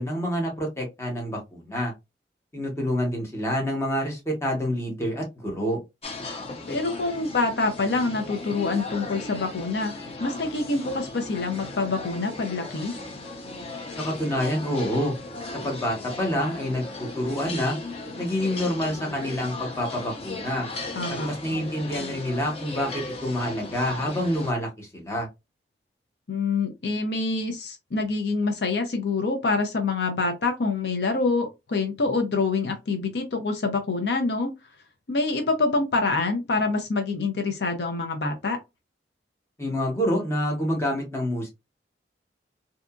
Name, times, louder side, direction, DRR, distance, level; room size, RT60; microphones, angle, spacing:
voice 1, 0.0-1.9 2.5-5.8 14.0-15.1 15.6-17.8 18.2-20.7 21.2-25.3 39.6-41.5, equal, 15° left, 0.9 m, -27 dB
sound 1, 6.0-24.5, left 2 dB, 35° left, 0.5 m, -37 dB
voice 2, 6.7-12.9 21.0-21.3 26.3-34.5 35.1-38.6, left 3 dB, 75° left, 0.6 m, -26 dB
2.7 x 2.4 x 2.3 m
head